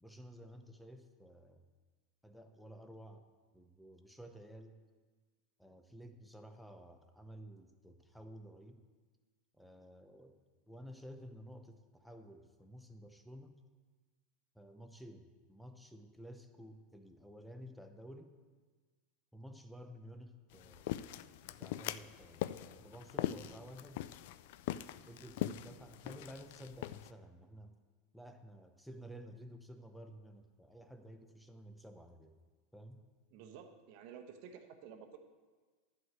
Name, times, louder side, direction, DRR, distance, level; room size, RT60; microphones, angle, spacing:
voice 1, 0.0-1.6 2.2-3.3 3.5-4.8 5.6-8.8 9.5-10.4 10.7-13.6 14.5-18.3 19.3-20.9 21.4-24.0 25.1-27.7 28.1-32.4 32.7-33.0, equal, ahead, 6 dB, 0.7 m, -53 dB
sound 1, 20.5-27.1, left 13 dB, 65° left, 0.3 m, -42 dB
voice 2, 33.3-35.2, right 7 dB, 55° right, 5 dB, 1.1 m, -52 dB
11.0 x 4.8 x 7.5 m, 1.4 s
supercardioid pair, 150°, 0 cm